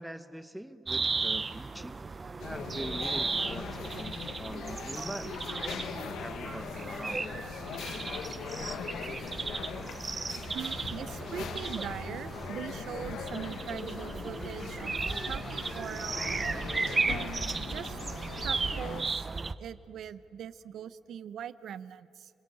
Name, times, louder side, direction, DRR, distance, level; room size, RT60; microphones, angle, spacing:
voice 1, 0.0-2.0 2.4-5.5 5.8-7.5, right 1 dB, 5° right, 13 dB, 1.0 m, -43 dB
sound 1, 0.9-19.5, right 4 dB, 30° right, 0.8 m, -35 dB
sound 2, 2.4-19.1, left 7 dB, 75° left, 1.3 m, -41 dB
voice 2, 10.5-15.0 15.3-16.3 17.0-18.0 18.4-19.3 19.6-22.3, right 9 dB, 70° right, 15 dB, 0.8 m, -41 dB
28.5 x 21.5 x 8.5 m, 2.5 s
cardioid pair, 90°, 0 cm